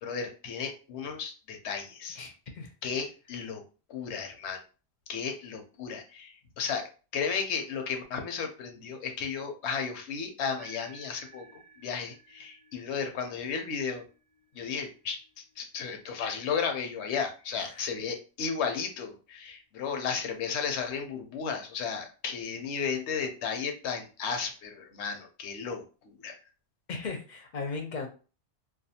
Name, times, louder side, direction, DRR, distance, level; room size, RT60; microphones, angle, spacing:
voice 1, 0.0-2.2 2.8-3.6 3.9-4.6 5.1-14.1 14.5-26.4, left 6 dB, 85° left, 5 dB, 0.9 m, -34 dB
voice 2, 2.1-2.7 17.7-17.9 26.9-28.1, left 4 dB, 55° left, 4 dB, 0.6 m, -37 dB
sound 1, 10.6-19.3, right 5 dB, 30° right, 0.5 m, -58 dB
2.4 x 2.3 x 2.7 m, 0.35 s
omnidirectional pair, 1.1 m